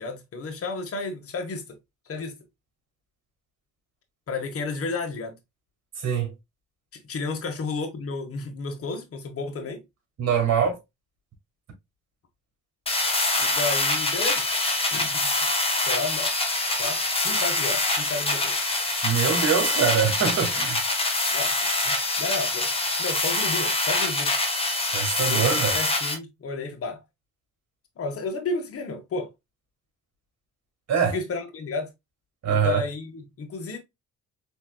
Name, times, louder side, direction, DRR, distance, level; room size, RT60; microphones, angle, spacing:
voice 1, 0.0-1.8 2.1-2.3 4.3-5.4 7.1-9.8 13.4-14.4 14.9-15.4 15.8-16.3 16.8-18.6 21.3-21.5 21.8-22.7 23.0-24.3 25.3-27.0 28.0-29.3 31.1-31.9 32.5-33.8, left 3 dB, 50° left, 1.3 m, -32 dB
voice 2, 10.2-10.8 19.0-20.8 24.9-25.7 30.9-31.2 32.4-32.8, right 7 dB, 60° right, 2.2 m, -23 dB
sound 1, 12.9-26.1, left 2 dB, 20° left, 1.3 m, -25 dB
4.5 x 3.5 x 2.2 m
cardioid pair, 90°, 30 cm